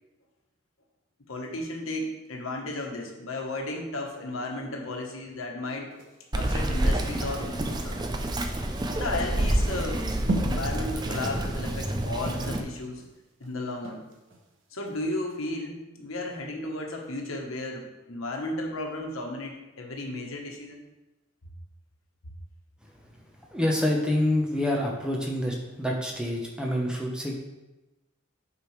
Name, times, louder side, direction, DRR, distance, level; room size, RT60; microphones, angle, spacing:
voice 1, 1.3-5.9 6.3-8.0 8.4-10.0 10.4-13.0 13.4-14.0 14.7-20.8, left 2 dB, 80° left, 1 dB, 1.2 m, -34 dB
sound 1, 5.9-14.5 14.9-15.0, right 1 dB, 65° right, 0.9 m, -38 dB
Bird vocalization bird call bird song, 6.3-12.6, right 1 dB, 20° right, 0.4 m, -28 dB
voice 2, 23.5-27.3, left 1 dB, 5° right, -1 dB, 0.9 m, -27 dB
8.5 x 4.9 x 3.3 m, 1.0 s
head